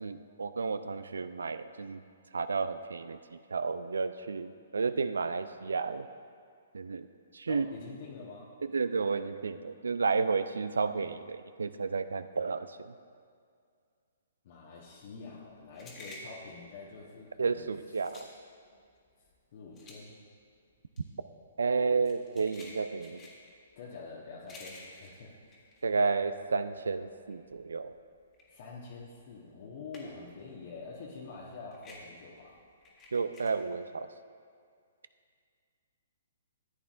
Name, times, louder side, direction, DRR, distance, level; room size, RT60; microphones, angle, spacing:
voice 1, 0.0-2.0 2.3-3.2 3.5-6.1 6.7-7.1 7.3-7.7 8.7-12.9 17.4-18.3 21.6-23.2 25.8-28.0 33.1-34.1, right 4 dB, 70° right, 12 dB, 0.4 m, -31 dB
voice 2, 7.5-8.5 14.4-17.7 18.0-18.2 18.7-18.8 19.5-20.2 23.7-25.6 28.5-32.6, left 4 dB, 50° left, -4 dB, 1.2 m, -46 dB
sound 1, 15.5-26.6 27.0-30.4 30.7-33.5, left 2 dB, 20° left, 1.7 m, -52 dB
14.0 x 8.7 x 2.5 m, 2.2 s
figure-of-eight pair, 120°, 0 cm